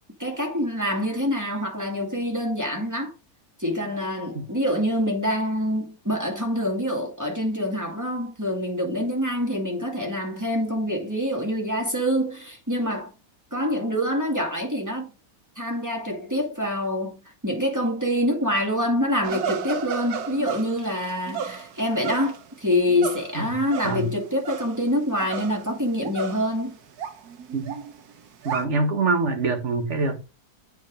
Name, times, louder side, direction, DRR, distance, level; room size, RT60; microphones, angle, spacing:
voice 1, 0.2-3.1 3.6-13.1 13.5-15.1 15.6-26.8, equal, 10° right, 2.3 m, -26 dB
sound 1, 19.2-24.8 25.1-26.7 27.0-28.7, right 7 dB, 85° right, 1.5 m, -34 dB
voice 2, 23.3-24.1 27.5-27.8 28.4-30.2, right 3 dB, 50° right, 1.8 m, -25 dB
7.9 x 4.7 x 5.1 m
omnidirectional pair, 1.6 m